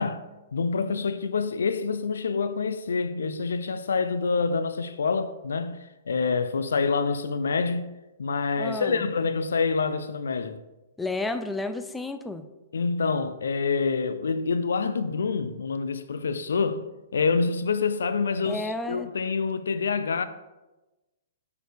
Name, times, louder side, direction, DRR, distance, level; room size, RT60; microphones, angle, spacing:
voice 1, 0.0-7.9 8.2-10.6 12.7-20.2, left 4 dB, 85° left, 0.4 m, -27 dB
voice 2, 8.6-9.0 11.0-12.4 18.4-19.1, left 2 dB, 5° left, 0.4 m, -31 dB
6.3 x 4.7 x 3.4 m
hypercardioid pair, 130°, 0 cm